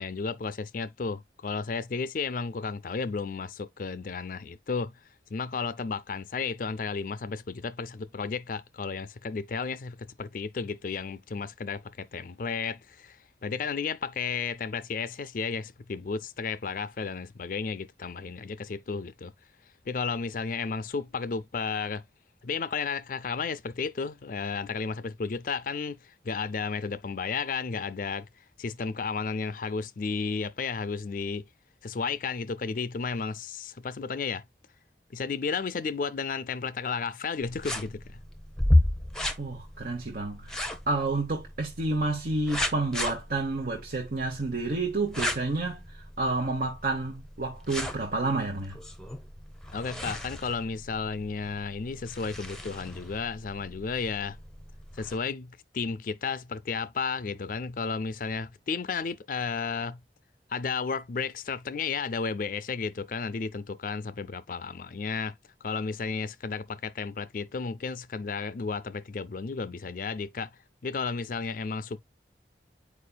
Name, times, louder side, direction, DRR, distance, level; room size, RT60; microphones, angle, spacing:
voice 1, 0.0-4.9 5.3-19.3 19.9-22.0 22.4-28.3 28.6-31.5 31.8-34.4 35.1-38.2 49.7-54.4 55.0-60.0 60.5-65.3 65.6-70.5 70.8-72.0, left 5 dB, 50° left, 0.4 m, -33 dB
sound 1, 37.4-55.2, left 1 dB, 5° left, 0.9 m, -33 dB
voice 2, 39.4-48.8, right 2 dB, 50° right, 1.0 m, -30 dB
8.4 x 4.9 x 2.3 m
head